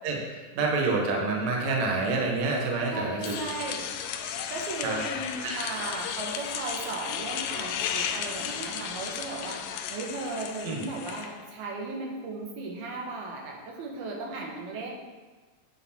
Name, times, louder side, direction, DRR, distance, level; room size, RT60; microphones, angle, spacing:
voice 1, 0.0-3.3 4.8-5.0 5.4-5.9 10.6-10.8, right 3 dB, 55° right, -1 dB, 2.3 m, -28 dB
voice 2, 2.9-3.9 4.5-14.9, right 2 dB, 75° right, -1 dB, 3.2 m, -36 dB
sound 1, 3.2-11.5, left 8 dB, 80° left, 2.1 m, -34 dB
9.7 x 8.2 x 4.4 m, 1.3 s
omnidirectional pair, 4.4 m